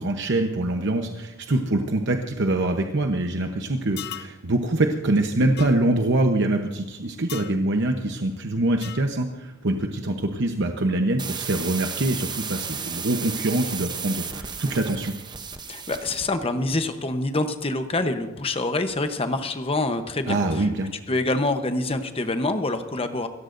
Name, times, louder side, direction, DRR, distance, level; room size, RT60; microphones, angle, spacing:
voice 1, 0.0-15.1 20.3-20.9, right 2 dB, 60° right, 4 dB, 0.9 m, -24 dB
sound 1, 4.0-4.4 5.6-5.8 7.3-7.6 8.8-9.1, left 12 dB, 50° left, 0.6 m, -37 dB
sound 2, 11.2-16.3, right 6 dB, 20° right, 0.8 m, -34 dB
voice 2, 15.7-20.4 21.1-23.3, left 2 dB, 30° left, 8 dB, 0.9 m, -26 dB
26.5 x 14.5 x 2.6 m, 1.0 s
head